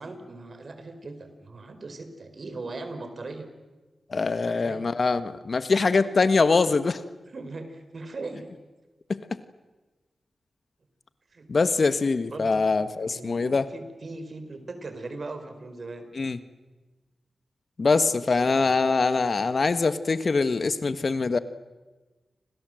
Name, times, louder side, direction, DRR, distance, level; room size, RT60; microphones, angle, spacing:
voice 1, 0.0-3.5 4.4-4.9 7.3-8.5 11.3-11.5 12.3-12.6 12.9-16.1 17.9-19.0 19.3-19.5, right 3 dB, 60° right, 8 dB, 4.5 m, -39 dB
voice 2, 4.1-7.0 9.1-9.2 11.5-13.7 16.2-16.4 17.8-21.4, left 4 dB, 60° left, 12 dB, 1.4 m, -23 dB
29.5 x 25.5 x 7.8 m, 1.2 s
cardioid pair, 50°, 0 cm